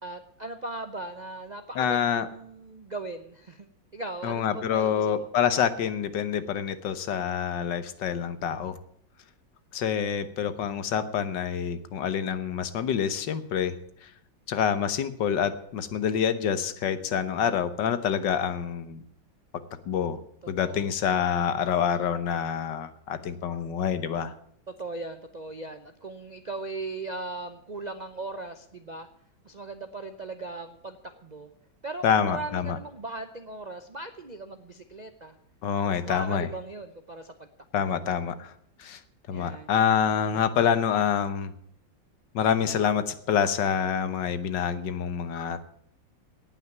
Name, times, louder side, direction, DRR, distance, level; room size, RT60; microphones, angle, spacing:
voice 1, 0.0-5.3 20.6-20.9 24.7-29.1 29.4-31.0 31.2-31.5 31.8-35.3 35.9-37.3 37.8-38.0 39.3-39.7, right 2 dB, 45° right, 6 dB, 0.5 m, -38 dB
voice 2, 1.7-2.3 4.2-8.8 9.7-14.1 14.5-19.0 19.9-20.2 20.5-24.3 32.0-32.8 35.6-36.5 37.7-38.5 38.8-39.0 39.3-41.5 42.3-45.6, left 8 dB, 70° left, 12 dB, 1.6 m, -27 dB
18.0 x 6.0 x 9.3 m, 0.69 s
omnidirectional pair, 2.0 m